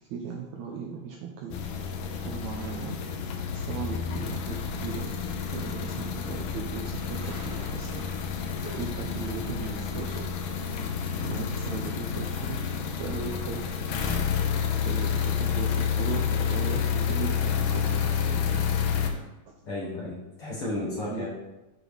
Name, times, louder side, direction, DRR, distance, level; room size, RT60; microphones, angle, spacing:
voice 1, 0.1-1.6 2.2-3.0 3.5-5.1 5.5-8.2 8.8-10.3 11.3-13.6 14.8-18.6 21.1-21.3, right 6 dB, 75° right, 0 dB, 1.7 m, -37 dB
sound 1, 1.5-19.1, left 7 dB, 80° left, 2.2 m, -29 dB
sound 2, 2.6-4.1 4.6-4.7 5.1-5.3 5.7-5.8 7.1-11.8, equal, 55° right, 3.6 m, -49 dB
voice 2, 19.6-21.3, left 2 dB, 50° left, -6 dB, 1.8 m, -34 dB
6.9 x 3.8 x 4.9 m, 1.0 s
omnidirectional pair, 3.8 m